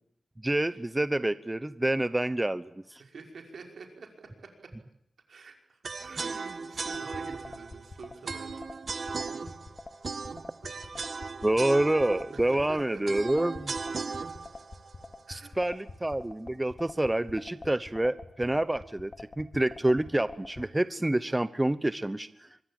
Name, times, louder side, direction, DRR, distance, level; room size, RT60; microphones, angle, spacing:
voice 1, 0.4-3.0 11.4-13.7 15.3-22.3, right 1 dB, 15° right, 14 dB, 0.9 m, -28 dB
voice 2, 3.0-4.6 5.3-8.6 9.3-9.6 10.6-11.1 12.3-13.0 15.3-15.5, right 4 dB, 75° right, 4 dB, 5.6 m, -47 dB
sound 1, 5.8-15.9, right 4 dB, 60° right, 1.4 m, -37 dB
sound 2, 6.9-20.7, left 3 dB, 40° left, 2.5 m, -45 dB
25.0 x 22.5 x 8.9 m, 0.73 s
wide cardioid pair, 75°, 0 cm